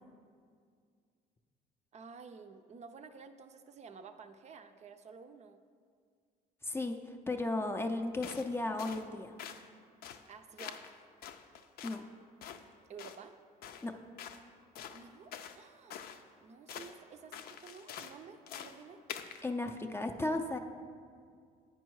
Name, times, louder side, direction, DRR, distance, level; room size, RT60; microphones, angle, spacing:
voice 1, 1.9-5.6 10.3-10.8 12.9-13.3 14.9-16.0 16.4-19.0, right 5 dB, 40° right, 8 dB, 0.4 m, -52 dB
voice 2, 6.6-9.3 11.8-12.1 13.8-13.9 19.4-20.6, left 2 dB, 15° left, 5 dB, 0.4 m, -35 dB
sound 1, 8.2-8.5 8.8-9.1 9.4-9.7 10.0-10.3 10.6-10.9 11.2-12.0 12.4-12.6 13.0-13.2 13.6-13.9 14.2-14.4 14.8-15.6 15.9-16.2 16.7-16.9 17.3-18.2 18.5-18.8 19.1-19.4, left 8 dB, 65° left, 0.5 m, -46 dB
8.9 x 5.4 x 4.6 m, 2.1 s
cardioid pair, 110°, 17 cm